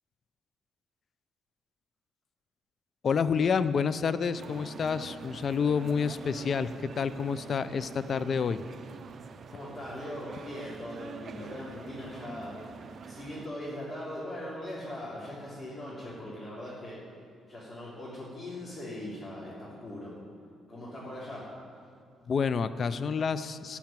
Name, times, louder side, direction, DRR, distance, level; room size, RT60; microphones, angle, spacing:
voice 1, 3.0-6.7 7.0-8.6 22.3-23.8, left 6 dB, 50° left, 14 dB, 0.5 m, -28 dB
sound 1, 4.3-13.5, right 5 dB, 50° right, 0.6 m, -45 dB
voice 2, 9.5-12.7 13.1-17.0 17.5-20.2 20.7-21.5, left 1 dB, 30° left, -9 dB, 3.6 m, -40 dB
13.5 x 5.8 x 9.0 m, 2.4 s
cardioid pair, 90°, 0 cm